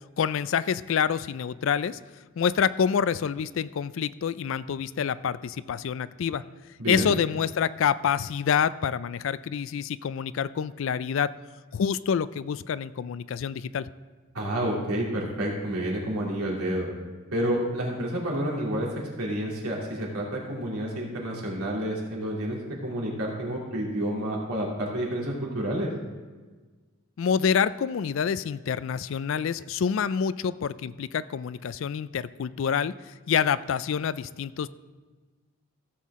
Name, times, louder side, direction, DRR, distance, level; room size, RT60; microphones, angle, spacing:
voice 1, 0.2-2.0 2.4-6.4 6.9-11.3 11.7-13.9 27.2-32.9 33.3-34.7, left 7 dB, 60° left, 16 dB, 0.3 m, -27 dB
voice 2, 6.8-7.1 14.3-16.9 17.3-18.9 19.2-25.9, right 1 dB, 90° right, -3 dB, 2.8 m, -29 dB
15.5 x 7.5 x 3.7 m, 1.3 s
head